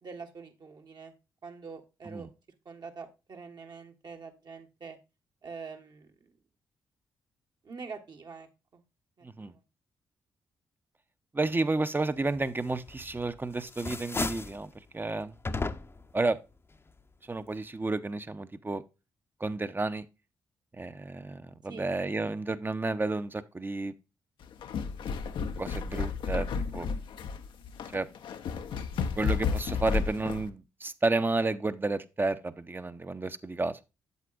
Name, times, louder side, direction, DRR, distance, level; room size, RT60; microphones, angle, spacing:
voice 1, 0.0-1.1 1.4-2.3 2.6-5.0 5.4-6.3 7.6-8.8 9.2-9.6 21.7-21.9, right 5 dB, 50° right, 1.4 m, -45 dB
voice 2, 11.3-15.3 16.1-16.4 17.3-18.8 19.4-20.1 20.8-23.9 25.6-26.5 26.7-26.9 27.9-28.1 29.2-33.8, right 3 dB, 25° right, 0.8 m, -31 dB
sound 1, 12.9-13.3 13.6-14.6 15.4-16.1, left 3 dB, 30° left, 0.7 m, -34 dB
sound 2, 24.4-30.5, left 5 dB, 70° left, 0.7 m, -32 dB
8.1 x 7.6 x 2.4 m
hypercardioid pair, 45°, 9 cm